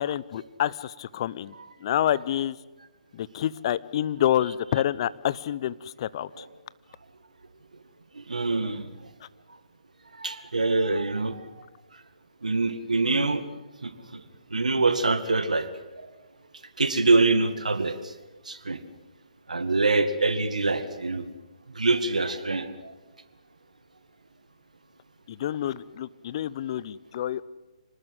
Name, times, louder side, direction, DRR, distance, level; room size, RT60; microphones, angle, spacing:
voice 1, 0.0-1.5 1.8-2.6 3.1-6.4 25.3-27.4, left 11 dB, 45° left, 19 dB, 0.9 m, -28 dB
voice 2, 8.1-8.9 10.2-11.5 12.4-13.4 13.8-14.2 14.5-15.7 16.0-16.1 16.8-18.1 18.5-18.8 19.5-21.3 21.8-22.9, right 3 dB, 85° right, 9 dB, 2.1 m, -25 dB
25.5 x 19.5 x 8.0 m, 1.1 s
figure-of-eight pair, 135°, 4 cm